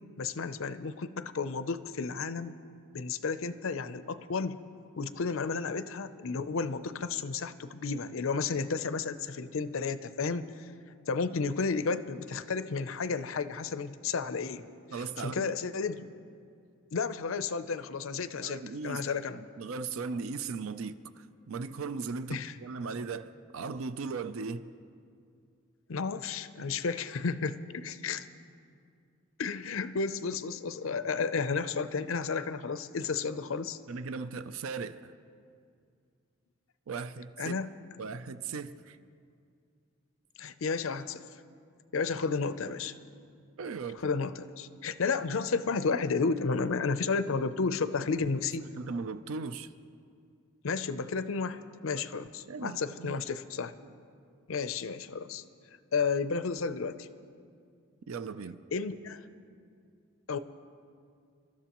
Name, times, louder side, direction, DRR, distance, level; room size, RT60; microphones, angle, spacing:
voice 1, 0.2-2.5 2.9-4.6 5.0-10.5 11.1-14.6 15.2-16.1 16.9-19.4 22.3-22.5 25.9-28.3 29.4-33.8 37.4-37.7 40.4-41.2 41.9-42.9 44.0-48.7 50.6-53.7 54.5-55.4 55.9-57.1 58.7-59.2 60.3-60.4, left 4 dB, 80° left, 0.6 m, -32 dB
voice 2, 14.9-15.5 18.4-19.0 19.3-24.7 30.8-31.0 33.9-35.1 36.9-37.5 38.0-39.0 42.6-42.9 43.6-44.1 48.7-49.7 52.5-53.2 53.8-53.9 58.1-58.6, right 4 dB, 85° right, 0.5 m, -38 dB
29.5 x 13.0 x 3.0 m
head